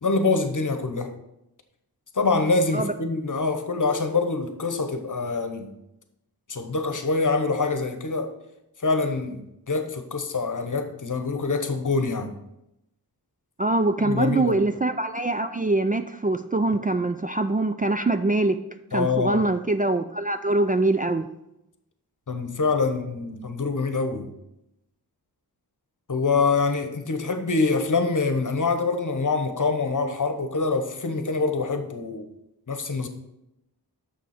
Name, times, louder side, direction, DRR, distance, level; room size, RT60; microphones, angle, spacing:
voice 1, 0.0-1.1 2.1-5.7 6.5-8.3 8.8-12.3 14.0-14.6 18.9-19.4 22.3-24.3 26.1-32.3 32.7-33.1, left 4 dB, 50° left, 7 dB, 1.0 m, -25 dB
voice 2, 13.6-18.6 18.9-21.3, right 2 dB, 20° right, 8 dB, 0.4 m, -23 dB
6.8 x 6.4 x 4.9 m, 0.87 s
wide cardioid pair, 55°, 40 cm